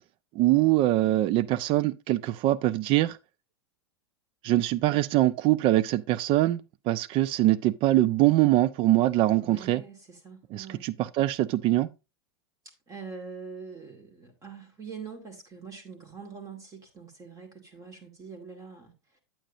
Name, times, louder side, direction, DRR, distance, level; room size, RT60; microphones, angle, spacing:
voice 1, 0.3-3.2 4.4-9.8 10.5-11.9, right 15 dB, 40° right, 0.6 m, -23 dB
voice 2, 9.4-10.8 12.9-19.2, right 5 dB, 25° right, 2.2 m, -44 dB
8.8 x 8.6 x 2.6 m
hypercardioid pair, 95°, 13 cm